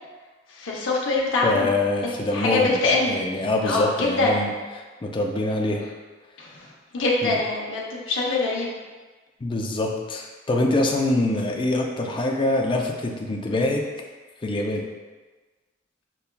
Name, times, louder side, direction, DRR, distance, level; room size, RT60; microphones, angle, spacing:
voice 1, 0.5-1.7 2.0-3.2 3.6-4.4 6.4-6.7 6.9-8.7, left 3 dB, 75° left, -3 dB, 0.7 m, -24 dB
voice 2, 1.4-2.8 3.1-4.5 5.0-5.8 7.2-7.4 9.4-13.9 14.4-14.8, left 2 dB, 25° left, 1 dB, 0.4 m, -24 dB
6.7 x 2.3 x 2.2 m, 1.3 s
head